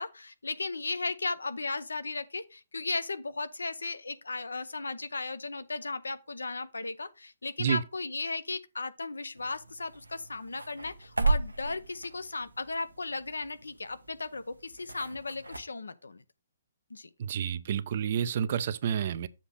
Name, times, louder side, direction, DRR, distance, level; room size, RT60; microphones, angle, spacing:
voice 1, 0.0-16.2 16.9-17.1, left 3 dB, 70° left, 0.6 m, -36 dB
sound 1, 9.3-15.6, right 3 dB, 80° right, 0.7 m, -35 dB
voice 2, 17.2-19.3, right 8 dB, 45° right, 0.5 m, -29 dB
7.3 x 2.9 x 6.0 m
figure-of-eight pair, 125°, 0 cm